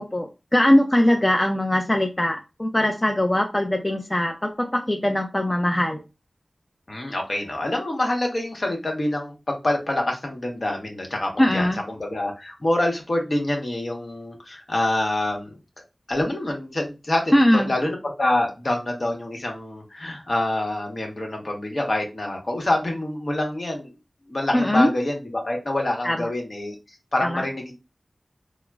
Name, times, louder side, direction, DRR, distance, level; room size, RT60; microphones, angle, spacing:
voice 1, 0.0-6.0 11.4-11.8 17.3-17.7 24.5-24.9 26.0-26.3 27.2-27.4, left 1 dB, 25° left, 3 dB, 0.4 m, -21 dB
voice 2, 6.9-15.6 16.1-23.9 24.3-26.8 27.1-27.7, left 1 dB, 55° left, 1 dB, 1.0 m, -26 dB
3.6 x 2.0 x 2.3 m, 0.27 s
wide cardioid pair, 45°, 0 cm